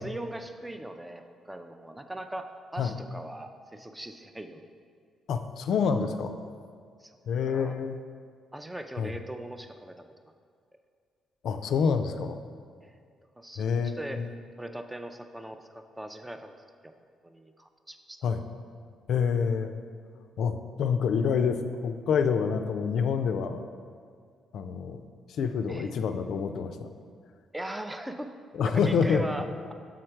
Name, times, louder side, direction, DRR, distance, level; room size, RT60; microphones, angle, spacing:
voice 1, 0.0-4.6 7.0-7.2 7.5-7.7 8.5-10.1 12.8-12.9 13.4-14.2 14.6-16.5 16.8-16.9 17.2-18.3 25.7-25.9 27.5-28.3 28.6-29.7, right 1 dB, 10° right, 7 dB, 0.4 m, -40 dB
voice 2, 5.3-6.3 7.3-8.0 9.0-9.1 11.4-12.4 13.6-14.3 18.2-18.4 19.1-19.7 20.4-23.6 24.5-25.0 25.3-26.9 28.5-29.2, left 6 dB, 70° left, 7 dB, 0.4 m, -27 dB
6.5 x 3.8 x 4.5 m, 2.1 s
cardioid pair, 90°, 0 cm